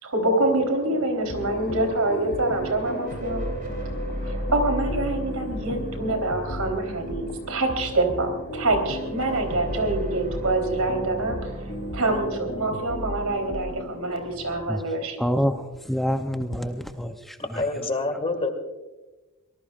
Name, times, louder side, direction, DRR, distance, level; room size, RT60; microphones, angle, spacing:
voice 1, 0.0-3.4 4.2-11.5 11.9-15.2, right 2 dB, 80° right, 3.7 m, -26 dB
sound 1, 1.2-14.7, right 1 dB, 40° right, 3.5 m, -35 dB
sound 2, 1.3-14.1, left 1 dB, 45° left, 0.9 m, -37 dB
voice 2, 15.2-17.6, equal, ahead, 0.6 m, -27 dB
voice 3, 17.5-18.5, left 2 dB, 25° left, 1.9 m, -26 dB
23.5 x 19.5 x 2.5 m
head